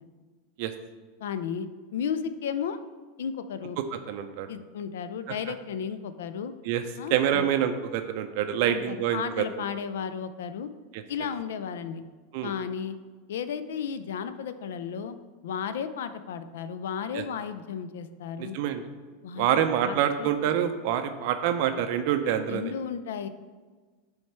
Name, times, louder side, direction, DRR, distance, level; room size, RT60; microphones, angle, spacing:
voice 1, 1.2-1.7 1.9-2.8 3.2-3.8 4.5-6.5 7.0-7.5 8.7-10.7 11.1-12.0 12.4-13.0 13.3-15.2 15.4-18.6 19.2-20.5 22.5-23.3, left 7 dB, 70° left, 11 dB, 0.4 m, -34 dB
voice 2, 4.1-4.5 6.6-6.8 7.1-9.6 10.9-11.0 12.3-12.5 17.1-17.2 18.4-18.9 19.4-22.7, right 10 dB, 60° right, 8 dB, 0.4 m, -26 dB
7.1 x 3.2 x 4.5 m, 1.4 s
hypercardioid pair, 90°, 0 cm